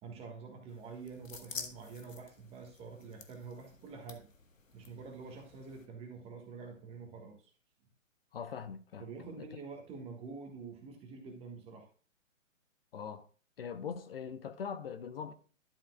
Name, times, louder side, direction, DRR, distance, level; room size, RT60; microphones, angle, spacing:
voice 1, 0.0-4.3 4.7-7.5 9.0-11.9, right 4 dB, 15° right, 1.5 m, -47 dB
sound 1, 0.7-5.9, left 4 dB, 80° left, 1.4 m, -50 dB
voice 2, 8.3-9.1 9.4-9.5 12.9-13.3 13.6-15.3, left 7 dB, 45° left, 0.8 m, -41 dB
12.0 x 7.2 x 2.2 m
figure-of-eight pair, 130°, 39 cm